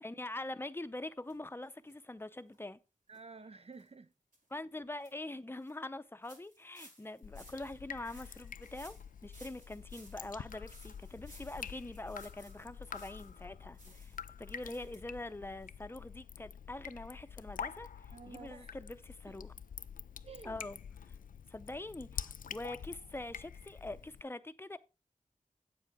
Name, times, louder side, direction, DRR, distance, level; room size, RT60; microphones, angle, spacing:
voice 1, 0.0-2.8 4.5-19.5 20.4-20.8 21.0-21.1 21.5-24.8, left 2 dB, 15° left, 0.6 m, -44 dB
sound 1, 1.3-1.4 1.9-2.0 2.5-2.6 3.1-3.2 3.7-3.9 4.3-4.4 4.8-5.1 5.6-5.7 6.2-13.4 13.7-15.0 15.3-15.4 15.6-15.7, right 1 dB, 80° right, 4.8 m, -60 dB
voice 2, 3.1-4.1 13.9-14.0 18.1-18.7 20.2-20.6, right 4 dB, 50° right, 0.5 m, -51 dB
Drip, 7.2-24.2, left 7 dB, 90° left, 0.4 m, -47 dB
8.6 x 7.4 x 3.5 m
wide cardioid pair, 70°, 14 cm